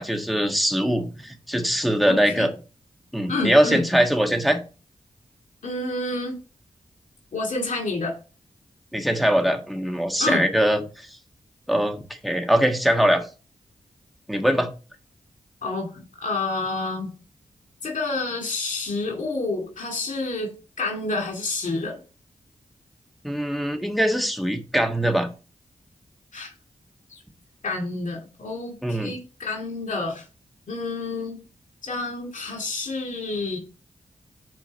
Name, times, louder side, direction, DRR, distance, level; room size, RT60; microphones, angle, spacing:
voice 1, 0.0-2.5 3.1-4.6 8.9-10.8 11.7-13.3 14.3-14.7 23.2-25.3 28.8-29.1, equal, ahead, 4 dB, 1.4 m, -22 dB
voice 2, 2.1-2.5 3.3-3.9 5.6-6.4 7.3-8.2 10.2-10.4 15.6-17.1 17.8-22.0 26.3-26.5 27.1-27.2 27.6-30.2 30.7-31.4 31.8-33.6, left 3 dB, 70° left, 0 dB, 2.3 m, -29 dB
5.8 x 4.6 x 5.3 m, 0.34 s
cardioid pair, 50°, 13 cm